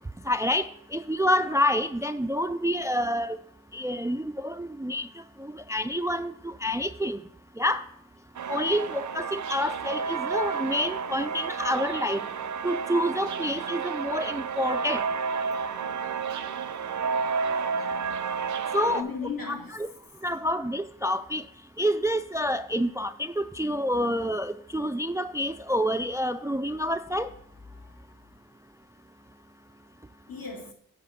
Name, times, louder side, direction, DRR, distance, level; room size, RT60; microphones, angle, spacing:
voice 1, 0.3-3.4 3.7-5.1 5.4-7.2 7.6-7.8 8.5-12.3 12.6-15.0 18.7-19.1 19.5-19.9 20.2-21.4 21.8-27.3, equal, 10° right, 0.3 m, -28 dB
sound 1, 8.4-19.0, right 5 dB, 55° right, 0.6 m, -31 dB
voice 2, 18.8-19.7 27.7-28.2 30.3-30.7, left 5 dB, 75° left, 2.5 m, -37 dB
8.4 x 5.0 x 5.0 m
cardioid pair, 55°, 35 cm